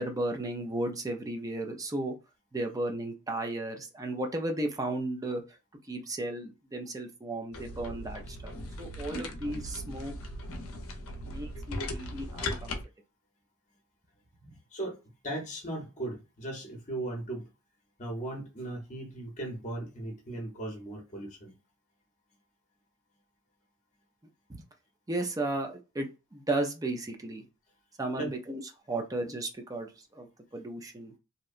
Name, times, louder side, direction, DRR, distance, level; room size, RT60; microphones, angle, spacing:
voice 1, 0.0-2.1 2.5-5.4 5.9-8.5 8.8-10.2 11.3-12.8 14.4-14.5 24.5-24.6 25.1-27.4 28.0-28.6 28.9-31.1, right 2 dB, 15° right, 0.4 m, -34 dB
sound 1, 7.5-12.8, left 1 dB, 65° left, 0.6 m, -38 dB
voice 2, 15.2-17.5 18.0-21.5 28.2-28.3, right 1 dB, 35° left, 0.8 m, -37 dB
2.7 x 2.2 x 2.4 m
head